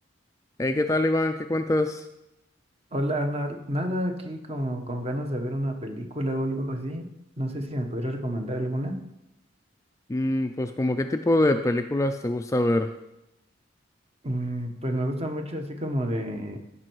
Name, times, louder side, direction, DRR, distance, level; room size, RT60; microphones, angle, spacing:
voice 1, 0.6-2.0 10.1-12.9, left 1 dB, 15° left, 7 dB, 0.3 m, -24 dB
voice 2, 2.9-7.1 7.4-9.0 14.2-16.6, equal, 30° right, 4 dB, 1.1 m, -29 dB
15.5 x 5.5 x 4.6 m, 0.88 s
head